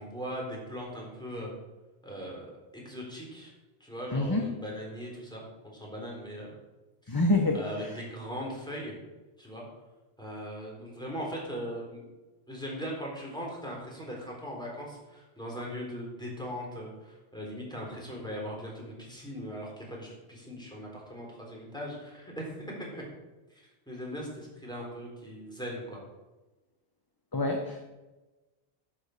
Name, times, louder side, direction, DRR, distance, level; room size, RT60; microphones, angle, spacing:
voice 1, 0.0-1.5 2.0-3.5 3.8-6.5 7.0-7.2 7.5-8.9 9.4-9.6 10.2-12.0 12.5-23.0 23.5-26.0, equal, 5° left, -3 dB, 4.0 m, -39 dB
voice 2, 4.1-4.5 7.1-7.6 27.3-27.8, left 2 dB, 20° left, 3 dB, 0.8 m, -26 dB
11.0 x 7.5 x 6.6 m, 1.1 s
omnidirectional pair, 1.2 m